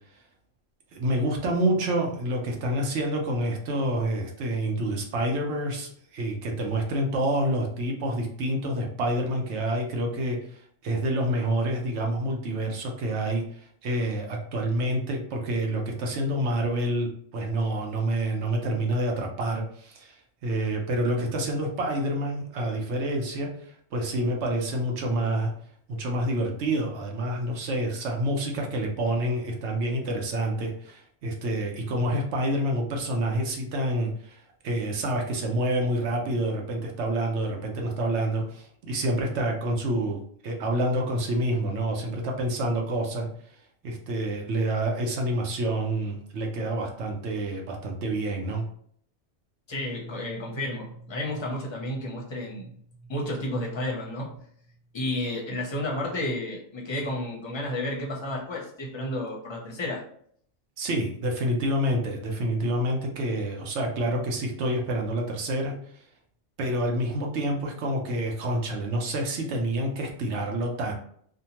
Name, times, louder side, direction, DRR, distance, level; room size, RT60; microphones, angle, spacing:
voice 1, 0.9-10.4 10.8-23.5 23.9-25.5 25.9-43.3 43.8-48.6 60.8-65.7 66.6-70.9, right 1 dB, 75° right, 1 dB, 1.0 m, -28 dB
voice 2, 49.7-52.7 53.1-54.4 54.9-60.0, left 1 dB, 30° left, -1 dB, 0.6 m, -31 dB
2.7 x 2.1 x 2.8 m, 0.62 s
omnidirectional pair, 1.2 m